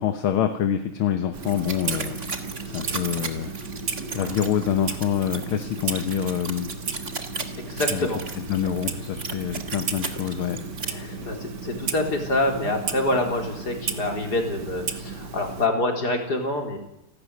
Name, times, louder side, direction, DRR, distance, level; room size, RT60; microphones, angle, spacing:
voice 1, 0.0-2.2 2.7-3.5 4.1-6.7 7.9-8.1 8.4-11.4, left 9 dB, 70° left, 8 dB, 2.0 m, -26 dB
Clock, 1.3-15.7, right 5 dB, 50° right, 2.3 m, -34 dB
Glitchy tape, 1.4-10.8, right 4 dB, 35° right, 2.1 m, -36 dB
voice 2, 7.6-8.2 11.2-16.8, left 2 dB, 45° left, 3 dB, 4.6 m, -26 dB
29.0 x 12.5 x 9.7 m, 0.87 s
omnidirectional pair, 2.4 m